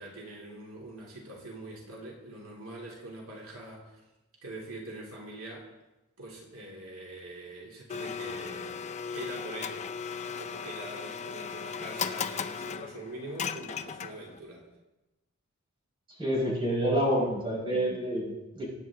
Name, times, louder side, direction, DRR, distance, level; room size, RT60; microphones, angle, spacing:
voice 1, 0.0-4.0 4.4-5.7 6.2-8.8 9.1-9.9 10.2-14.7, right 2 dB, 75° right, -3 dB, 3.0 m, -44 dB
Domestic sounds home sounds, 7.9-14.4, left 6 dB, 30° left, 0.5 m, -37 dB
voice 2, 16.2-18.7, equal, 25° right, -4 dB, 4.9 m, -28 dB
23.0 x 9.4 x 3.7 m, 1.0 s
head